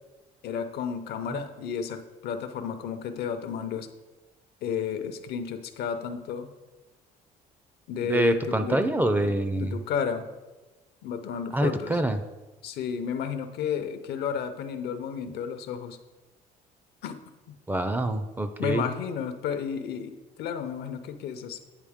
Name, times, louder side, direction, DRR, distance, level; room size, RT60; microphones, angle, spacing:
voice 1, 0.4-3.9 4.6-6.5 7.9-8.8 9.1-9.3 9.6-10.3 11.0-12.0 12.6-16.0 17.0-17.2 17.5-17.6 18.6-21.6, left 7 dB, 75° left, 8 dB, 0.6 m, -32 dB
voice 2, 8.0-9.8 11.5-12.2 17.7-18.8, right 1 dB, 10° right, 9 dB, 0.4 m, -26 dB
8.9 x 4.3 x 3.6 m, 1.1 s
cardioid pair, 110°, 17 cm